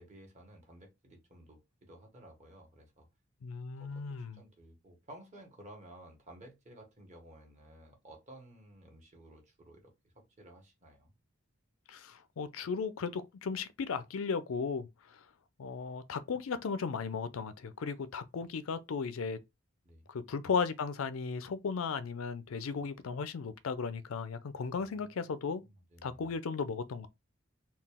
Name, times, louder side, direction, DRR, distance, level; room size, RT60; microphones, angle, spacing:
voice 1, 0.0-3.1 3.7-4.0 4.3-11.1 19.8-20.1 24.8-26.3, right 1 dB, 35° right, 1.4 m, -55 dB
voice 2, 3.4-4.4 11.9-14.9 15.6-19.4 20.1-25.6 26.0-27.1, left 5 dB, 85° left, 0.4 m, -36 dB
3.9 x 2.4 x 3.5 m
head